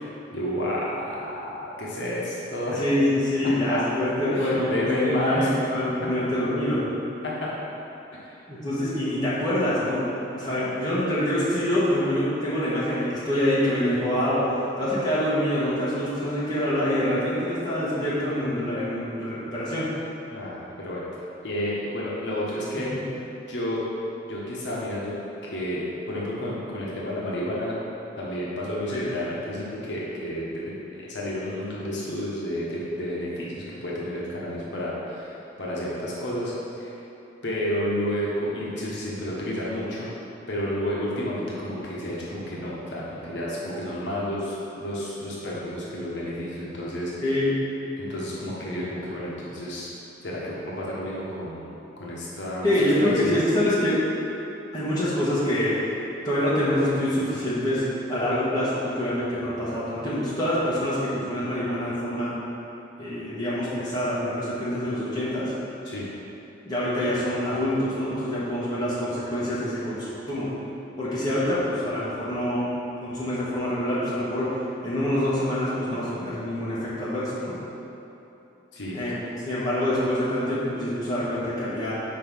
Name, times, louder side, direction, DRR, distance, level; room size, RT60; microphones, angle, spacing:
voice 1, 0.3-2.8 3.7-3.8 4.3-5.5 7.2-7.5 8.2-8.4 20.3-21.0 21.4-22.9 23.5-23.8 24.2-25.1 25.5-27.8 28.2-37.0 37.4-40.1 40.5-47.1 48.0-49.9 50.2-51.7 52.0-52.7 53.0-53.3 65.8-66.1 78.7-79.0, equal, 70° left, -6 dB, 1.1 m, -30 dB
voice 2, 2.7-6.8 8.5-10.0 10.3-14.5 14.8-19.9 22.8-23.0 28.9-29.0 47.2-47.5 52.6-54.0 54.7-55.9 56.2-62.3 63.0-65.5 66.6-70.5 71.0-72.7 73.0-77.6 78.9-79.2 79.4-82.0, left 1 dB, 20° left, -10 dB, 1.5 m, -25 dB
5.5 x 4.7 x 5.5 m, 3.0 s
head